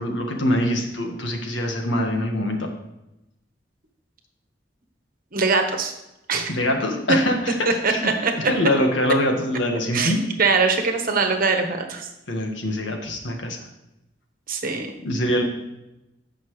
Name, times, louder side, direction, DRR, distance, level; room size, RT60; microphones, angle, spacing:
voice 1, 0.0-2.7 6.5-7.5 7.9-8.1 8.5-10.2 12.3-13.6 15.0-15.4, left 1 dB, 85° left, 2 dB, 1.6 m, -24 dB
voice 2, 5.3-5.9 6.3-6.5 7.1-7.2 7.6-8.5 9.9-10.1 10.4-12.1 14.5-14.9, right 4 dB, 50° right, 4 dB, 1.2 m, -22 dB
14.5 x 5.8 x 3.2 m, 0.91 s
head